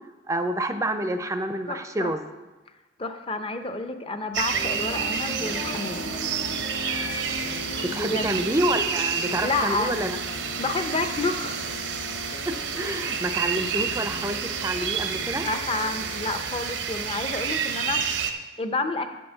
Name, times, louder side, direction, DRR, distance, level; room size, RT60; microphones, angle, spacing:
voice 1, 0.3-2.2 7.4-7.5 7.8-10.2 12.5-15.5, right 1 dB, 15° right, 8 dB, 0.5 m, -28 dB
voice 2, 1.7-2.1 3.0-6.1 7.9-8.4 9.4-9.9 10.6-11.7 15.4-19.2, left 3 dB, 30° left, 8 dB, 0.6 m, -30 dB
sound 1, 4.3-18.3, right 7 dB, 80° right, 0.7 m, -30 dB
sound 2, 4.5-10.7, equal, 45° left, 1.0 m, -39 dB
sound 3, 5.4-16.6, left 6 dB, 80° left, 0.4 m, -41 dB
8.9 x 5.3 x 7.0 m, 1.1 s
head